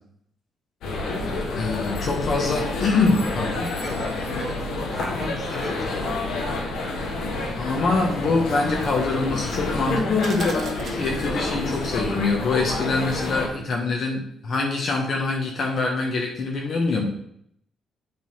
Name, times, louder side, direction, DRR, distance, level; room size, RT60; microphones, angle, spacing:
sound 1, 0.8-13.5, left 2 dB, 80° left, 1.7 m, -28 dB
voice 1, 1.5-3.8 7.5-17.0, left 3 dB, 55° left, 0 dB, 1.5 m, -24 dB
voice 2, 3.8-4.6 4.9-6.3, equal, 10° left, -1 dB, 2.8 m, -37 dB
sound 2, 10.2-11.7, right 5 dB, 55° right, 1.2 m, -40 dB
7.8 x 4.1 x 5.7 m, 0.70 s
cardioid pair, 90°, 0 cm